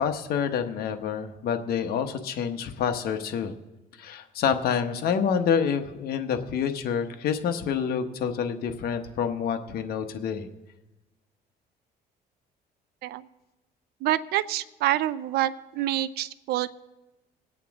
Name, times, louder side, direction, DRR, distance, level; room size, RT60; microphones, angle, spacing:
voice 1, 0.0-3.5 4.0-10.5, left 7 dB, 65° left, 7 dB, 1.1 m, -27 dB
voice 2, 14.0-16.7, right 14 dB, 70° right, 14 dB, 0.4 m, -27 dB
20.5 x 8.4 x 3.6 m, 1.0 s
cardioid pair, 110°, 17 cm